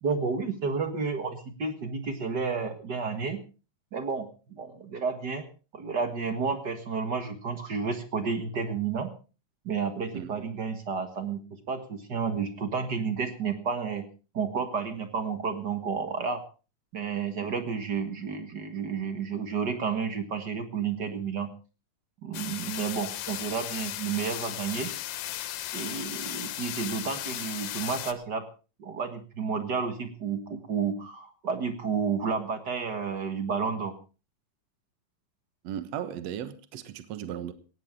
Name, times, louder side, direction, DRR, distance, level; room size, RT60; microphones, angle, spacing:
voice 1, 0.0-3.4 3.9-5.4 5.7-9.1 9.6-11.4 11.7-14.0 14.3-16.4 16.9-21.5 22.2-24.9 25.7-28.4 28.8-33.9, right 5 dB, 45° right, 1.6 m, -31 dB
sound 1, 22.3-28.1, left 13 dB, 70° left, 2.0 m, -36 dB
voice 2, 35.6-37.5, right 10 dB, 60° right, 2.2 m, -36 dB
18.0 x 16.5 x 3.6 m
omnidirectional pair, 3.7 m